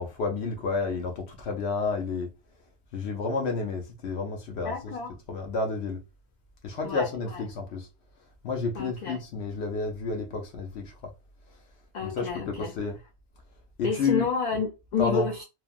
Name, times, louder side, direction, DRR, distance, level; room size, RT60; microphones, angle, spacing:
voice 1, 0.0-2.3 2.9-4.9 5.3-6.0 6.6-7.9 8.4-10.9 12.0-13.0 13.8-14.2 15.0-15.3, left 4 dB, 75° left, 0.9 m, -30 dB
voice 2, 4.6-5.2 6.8-7.5 8.7-9.2 11.9-12.7 13.8-15.4, left 5 dB, 55° left, 0.5 m, -30 dB
3.1 x 2.1 x 2.3 m
omnidirectional pair, 1.1 m